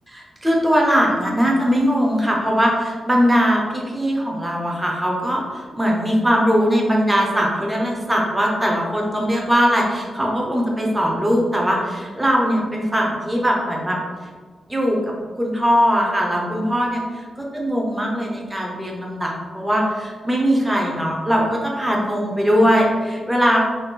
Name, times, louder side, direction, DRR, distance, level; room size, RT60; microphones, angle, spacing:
voice 1, 0.1-14.0 14.7-15.0 15.4-23.6, equal, 5° right, -2 dB, 0.8 m, -20 dB
4.0 x 3.3 x 3.8 m, 1.5 s
wide cardioid pair, 160°, 0 cm